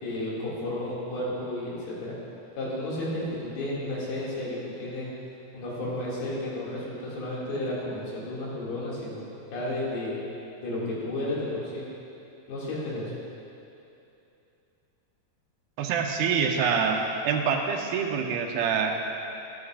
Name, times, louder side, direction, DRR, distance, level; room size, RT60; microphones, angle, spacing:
voice 1, 0.0-2.2 2.6-5.1 5.5-9.2 9.5-10.1 10.6-11.8 12.5-13.1, left 1 dB, 85° left, -7 dB, 4.3 m, -32 dB
voice 2, 15.8-19.0, right 6 dB, 85° right, 3 dB, 2.6 m, -26 dB
14.5 x 12.5 x 2.5 m, 2.8 s
omnidirectional pair, 4.4 m